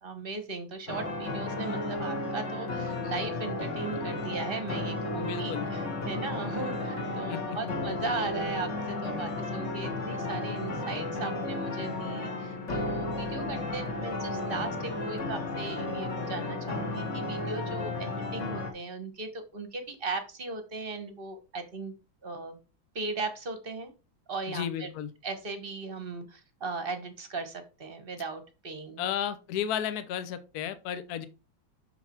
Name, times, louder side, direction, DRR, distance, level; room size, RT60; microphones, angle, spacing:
voice 1, 0.0-21.9 22.2-22.6 22.9-23.9 24.3-24.9 25.2-29.0, right 3 dB, 35° right, 8 dB, 1.0 m, -38 dB
sound 1, 0.9-18.7, left 2 dB, 40° left, 1.6 m, -33 dB
voice 2, 5.2-5.7 7.3-7.8 24.5-25.1 29.0-31.3, left 9 dB, 60° left, 11 dB, 1.1 m, -33 dB
6.3 x 5.7 x 4.4 m, 0.31 s
omnidirectional pair, 2.2 m